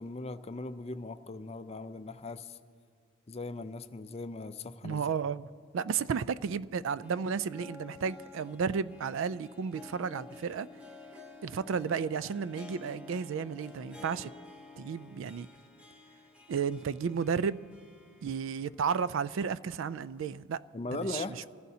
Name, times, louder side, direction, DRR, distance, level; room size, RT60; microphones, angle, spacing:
voice 1, 0.0-2.6 3.3-5.0 20.7-21.5, left 2 dB, 30° left, 0.4 m, -39 dB
voice 2, 4.8-5.5 5.7-10.7 11.4-14.3 14.8-15.5 16.5-17.7 18.2-20.6 20.9-21.5, right 6 dB, 60° right, 0.3 m, -33 dB
Harp, 7.0-18.9 19.2-19.3 20.2-20.3, left 3 dB, 5° right, 0.8 m, -51 dB
24.0 x 15.0 x 2.8 m
head